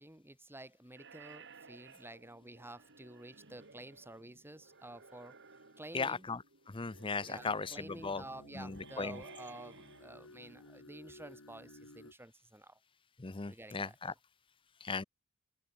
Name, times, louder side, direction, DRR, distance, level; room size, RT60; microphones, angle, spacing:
voice 1, 0.0-5.4 5.8-6.3 7.3-12.8 13.5-14.2, right 1 dB, 10° right, 3.4 m, -51 dB
sound 1, 1.0-10.7, right 4 dB, 55° right, 5.5 m, -57 dB
voice 2, 5.9-6.4 6.7-8.2 8.6-9.2 13.2-14.1 14.8-15.0, left 4 dB, 25° left, 0.7 m, -37 dB
sound 2, 6.8-12.1, left 2 dB, 65° left, 3.1 m, -56 dB
head